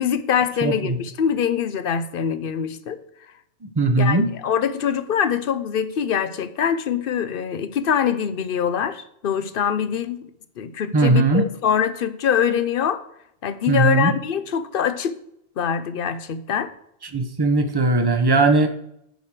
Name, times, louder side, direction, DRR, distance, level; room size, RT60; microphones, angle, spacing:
voice 1, 0.0-3.0 4.0-10.3 10.6-13.0 13.4-15.2 15.6-16.7, left 8 dB, 60° left, 0.9 m, -24 dB
voice 2, 0.6-1.0 3.6-4.3 10.9-11.4 13.7-14.2 17.1-18.7, right 3 dB, 25° right, 0.9 m, -19 dB
9.3 x 4.9 x 6.0 m
omnidirectional pair, 1.1 m